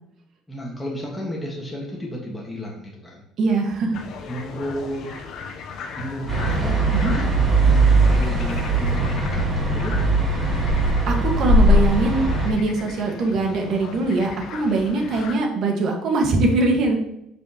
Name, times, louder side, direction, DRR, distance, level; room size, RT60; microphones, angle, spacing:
voice 1, 0.5-3.2 4.3-5.1 6.0-6.9 7.2-10.1, equal, 5° left, -3 dB, 1.6 m, -33 dB
voice 2, 3.4-4.0 6.9-7.2 11.1-17.0, right 3 dB, 55° right, 1 dB, 1.7 m, -22 dB
sound 1, 3.9-15.4, left 5 dB, 60° left, 0.8 m, -37 dB
sound 2, 6.3-12.5, right 2 dB, 15° right, 2.9 m, -19 dB
8.9 x 5.3 x 3.0 m, 0.80 s
cardioid pair, 120°, 0 cm